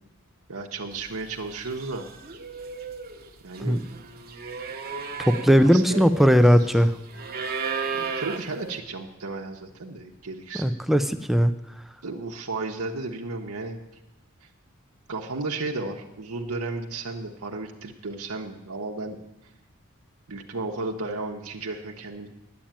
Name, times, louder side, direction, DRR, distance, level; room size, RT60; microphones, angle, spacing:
voice 1, 0.5-2.1 3.4-3.8 5.6-6.4 7.9-10.7 12.0-13.8 15.1-19.2 20.3-22.3, right 3 dB, 80° right, 1 dB, 1.0 m, -34 dB
sound 1, 1.2-1.4 1.6-8.8, right 5 dB, 45° right, 1.1 m, -35 dB
voice 2, 5.2-6.9 10.6-11.5, equal, ahead, 10 dB, 0.5 m, -18 dB
10.5 x 8.7 x 8.8 m, 0.93 s
head